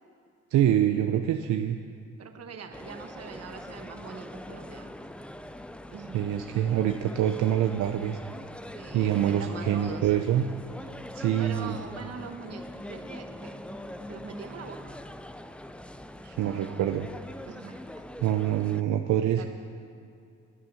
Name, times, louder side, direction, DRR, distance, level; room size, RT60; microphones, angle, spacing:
voice 1, 0.5-1.8 6.1-8.2 8.9-10.4 11.1-11.8 16.2-17.1 18.2-19.5, right 11 dB, 80° right, 6 dB, 0.7 m, -25 dB
voice 2, 2.2-4.9 5.9-6.4 8.7-10.1 10.8-11.0 11.4-13.6 14.1-14.9 16.4-16.9 17.5-18.0 19.4-19.5, right 6 dB, 55° right, 6 dB, 1.4 m, -43 dB
sound 1, 2.7-18.8, left 1 dB, 5° left, 0.5 m, -43 dB
14.5 x 9.9 x 7.1 m, 2.5 s
cardioid pair, 90°, 30 cm